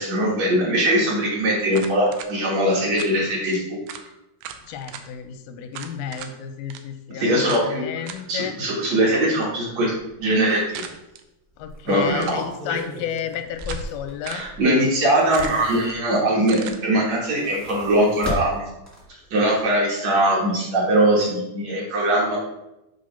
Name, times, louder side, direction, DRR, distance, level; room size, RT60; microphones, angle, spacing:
voice 1, 0.0-3.8 7.2-7.9 8.3-9.9 10.2-10.8 11.9-12.4 12.7-12.8 14.2-18.7 19.3-22.4, right 1 dB, 55° right, -4 dB, 2.2 m, -21 dB
sound 1, 1.7-2.3 3.0-3.2 3.5-3.6 3.9-4.1 4.4-5.1 5.7-6.3 6.7-6.8 7.5-7.7 8.1-8.4 10.8-11.2 12.1-12.5 13.2-13.9 14.2-14.5 15.3-15.8 16.5-16.8, right 9 dB, 90° right, 2.5 m, -37 dB
voice 2, 4.7-8.6 11.6-14.4, left 9 dB, 85° left, 8 dB, 2.5 m, -32 dB
sound 2, 9.9-10.1 10.5-10.6 11.5-14.6 15.0-16.3 17.1-19.2 19.6-19.7, equal, 15° left, 0.6 m, -35 dB
7.8 x 3.3 x 5.6 m, 0.91 s
omnidirectional pair, 4.2 m